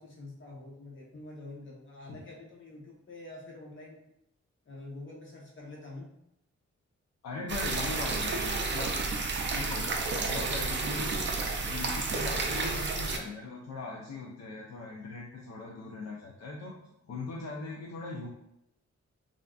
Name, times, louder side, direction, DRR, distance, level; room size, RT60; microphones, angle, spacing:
voice 1, 0.0-4.1 4.6-6.1, left 2 dB, 40° left, -3 dB, 0.9 m, -46 dB
voice 2, 7.2-9.0 9.5-11.3 11.6-16.7 17.1-18.3, left 3 dB, 65° left, -2 dB, 0.5 m, -40 dB
sound 1, 7.5-13.2, right 3 dB, 40° right, 0.4 m, -31 dB
3.4 x 2.5 x 2.3 m, 0.80 s
wide cardioid pair, 145°, 29 cm